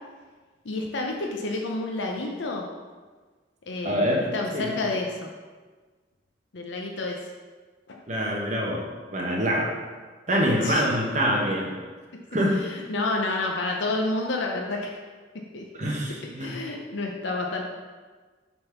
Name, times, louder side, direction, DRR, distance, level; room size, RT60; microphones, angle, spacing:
voice 1, 0.6-2.7 3.7-5.3 6.5-7.2 10.6-10.9 12.5-15.0 15.5-15.6 16.4-17.6, left 2 dB, 75° left, 1 dB, 0.7 m, -29 dB
voice 2, 3.8-4.8 8.1-8.9 9.1-9.7 10.3-11.7 12.3-12.6 15.7-16.6, equal, 40° right, -2 dB, 1.0 m, -25 dB
6.8 x 3.7 x 5.7 m, 1.4 s
head